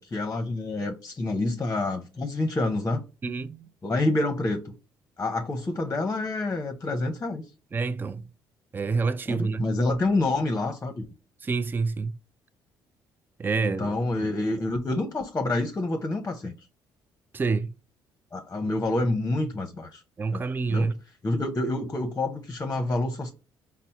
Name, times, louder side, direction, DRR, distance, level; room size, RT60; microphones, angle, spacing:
voice 1, 0.0-3.0 3.8-4.7 5.2-7.4 9.3-11.0 13.6-16.5 18.3-20.0 20.3-20.4 20.7-20.9 21.2-23.3, left 2 dB, 25° left, 0.7 m, -27 dB
voice 2, 3.2-3.7 7.7-8.3 8.7-9.7 11.4-12.2 13.4-14.4 17.3-17.7 20.2-21.0, right 4 dB, 20° right, 0.3 m, -28 dB
4.2 x 2.0 x 4.0 m
supercardioid pair, 75°, 9 cm